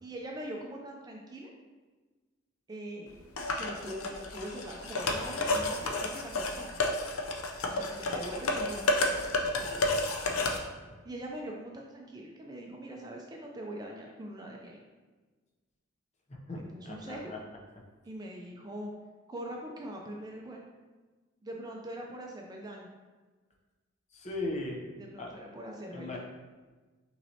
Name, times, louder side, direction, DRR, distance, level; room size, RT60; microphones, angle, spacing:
voice 1, 0.0-1.5 2.7-6.8 7.6-8.8 9.4-9.8 11.1-14.8 16.5-17.2 18.1-18.9 19.3-20.6 21.4-22.9 25.0-26.2, right 1 dB, 20° right, 0 dB, 0.4 m, -42 dB
sound 1, 3.4-10.6, left 2 dB, 85° left, 0.6 m, -31 dB
voice 2, 16.3-17.4 24.1-24.9 25.2-25.3 25.9-26.2, left 2 dB, 30° left, -1 dB, 0.6 m, -38 dB
5.7 x 3.1 x 2.8 m, 1.3 s
head